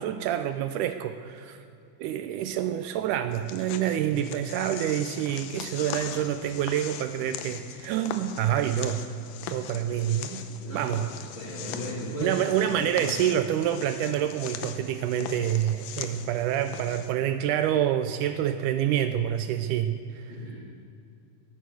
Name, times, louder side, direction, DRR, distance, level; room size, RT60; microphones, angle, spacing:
voice 1, 0.0-1.6 2.0-9.0 9.5-10.4 10.7-11.1 12.2-20.3, right 10 dB, 80° right, 9 dB, 1.9 m, -27 dB
sound 1, 3.3-17.1, left 9 dB, 85° left, 2.4 m, -40 dB
voice 2, 10.6-13.1 20.3-20.7, equal, 35° left, -5 dB, 2.9 m, -37 dB
14.0 x 11.0 x 6.5 m, 2.4 s
omnidirectional pair, 3.9 m